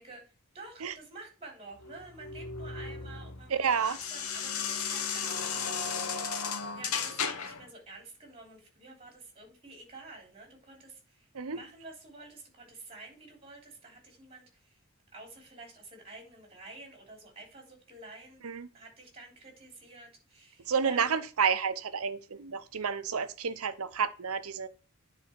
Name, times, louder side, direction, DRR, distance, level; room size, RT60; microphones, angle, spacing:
voice 1, 0.0-6.2 6.7-14.8 15.1-18.4 18.7-21.2, right 3 dB, 30° right, 3.2 m, -49 dB
sound 1, 1.8-7.7, left 6 dB, 85° left, 1.0 m, -35 dB
voice 2, 3.5-4.0 11.3-11.6 18.4-18.7 20.7-24.7, right 6 dB, 80° right, 0.7 m, -30 dB
9.7 x 4.1 x 4.3 m
head